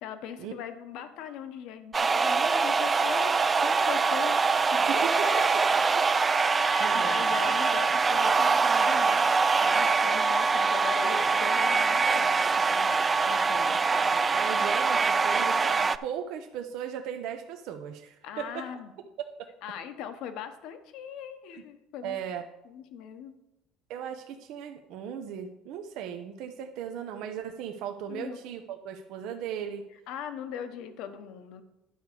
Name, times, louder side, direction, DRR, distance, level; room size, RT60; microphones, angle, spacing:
voice 1, 0.0-5.8 6.5-13.8 18.2-18.9 19.6-22.2 22.6-23.3 28.1-28.4 30.1-31.6, left 8 dB, 70° left, 9 dB, 1.0 m, -40 dB
sound 1, 1.9-16.0, right 4 dB, 20° right, 0.3 m, -24 dB
voice 2, 6.8-7.2 13.7-18.7 19.2-19.5 22.0-22.4 23.9-29.8, right 9 dB, 70° right, 5 dB, 0.7 m, -37 dB
10.5 x 4.7 x 6.7 m, 0.93 s
cardioid pair, 125°, 0 cm